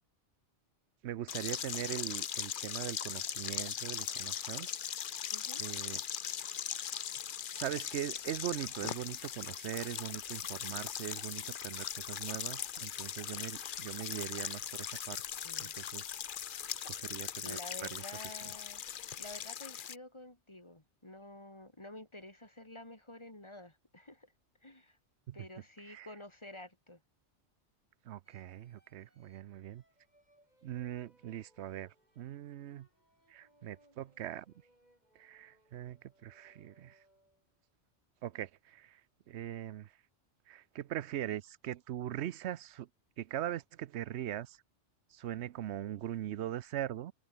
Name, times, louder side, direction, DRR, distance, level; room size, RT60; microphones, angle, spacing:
voice 1, 1.0-4.7 5.6-6.0 7.5-15.2 15.6-16.2 16.9-18.0 25.3-25.4 25.9-26.1 28.0-29.8 30.6-32.9 33.3-34.5 35.2-37.0 38.2-39.0 39.3-39.9 40.5-42.9 43.2-44.6 45.1-47.1, right 12 dB, 70° right, 0.9 m, -41 dB
sound 1, 1.3-19.9, left 9 dB, 50° left, 0.8 m, -40 dB
voice 2, 5.3-5.7 15.4-15.7 17.4-18.8 19.2-24.3 24.6-25.0 25.3-27.0, left 1 dB, 25° left, 3.0 m, -50 dB
sound 2, 7.9-19.5, equal, 5° right, 6.3 m, -73 dB
sound 3, 28.2-37.6, right 1 dB, 35° right, 7.8 m, -70 dB
open air
omnidirectional pair, 1.2 m